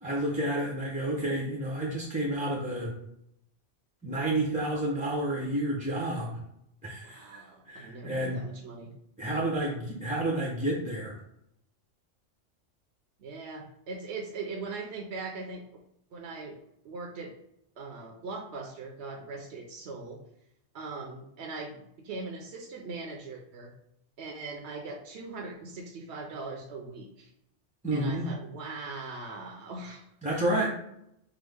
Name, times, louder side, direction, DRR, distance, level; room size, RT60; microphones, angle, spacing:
voice 1, 0.0-2.9 4.0-6.4 6.8-7.4 7.7-8.4 9.2-11.1 27.8-28.3 30.2-30.7, right 1 dB, 10° right, -4 dB, 0.4 m, -30 dB
voice 2, 7.0-8.9 13.2-15.6 16.1-16.6 16.8-17.3 17.8-20.2 20.7-23.7 24.2-27.3 27.9-30.0, right 3 dB, 65° right, 0 dB, 0.8 m, -40 dB
5.9 x 2.0 x 3.3 m, 0.77 s
omnidirectional pair, 1.3 m